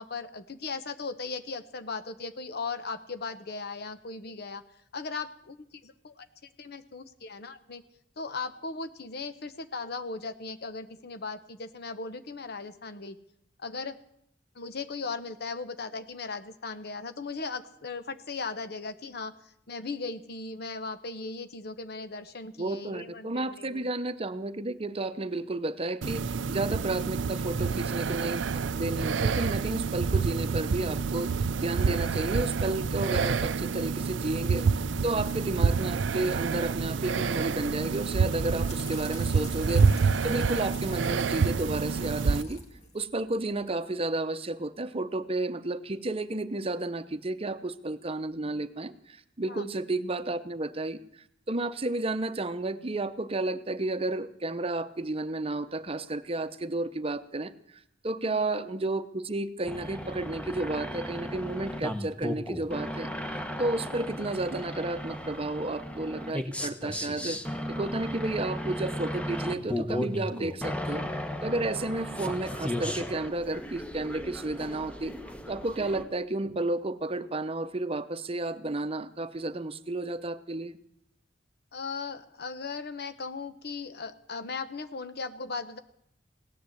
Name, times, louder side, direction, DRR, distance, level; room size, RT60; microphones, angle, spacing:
voice 1, 0.0-4.6 4.9-6.3 6.6-7.8 8.2-13.2 13.6-14.0 14.5-23.9 49.5-49.6 58.2-58.4 71.7-71.8 81.7-85.8, left 4 dB, 60° left, 11 dB, 0.9 m, -37 dB
voice 2, 22.6-42.6 42.9-51.0 51.5-57.5 58.0-63.1 63.6-71.1 71.4-75.1 75.5-80.8, right 2 dB, 30° right, 12 dB, 0.8 m, -32 dB
sound 1, 26.0-42.4, right 5 dB, 85° right, 0.5 m, -28 dB
sound 2, 38.1-43.7, left 3 dB, 40° left, 2.3 m, -48 dB
sound 3, 59.6-76.0, left 1 dB, 5° left, 1.1 m, -35 dB
17.5 x 10.0 x 7.9 m, 0.73 s
head